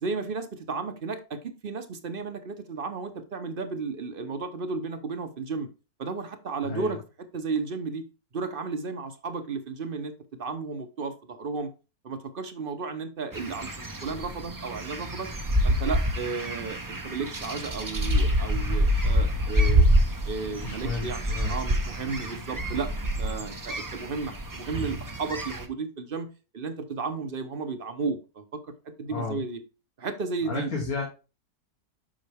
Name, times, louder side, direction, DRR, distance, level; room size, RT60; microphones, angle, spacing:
voice 1, 0.0-5.7 6.0-8.0 8.3-10.1 10.4-11.7 12.0-15.3 15.6-19.8 20.3-28.4 28.8-29.6 30.0-30.7, right 4 dB, 45° right, 9 dB, 0.8 m, -33 dB
sound 1, 13.3-25.6, equal, 25° right, 0.5 m, -27 dB
voice 2, 20.6-21.5 29.1-29.4 30.4-31.0, left 4 dB, 70° left, -2 dB, 2.0 m, -33 dB
7.5 x 5.8 x 3.4 m, 0.31 s
omnidirectional pair, 1.6 m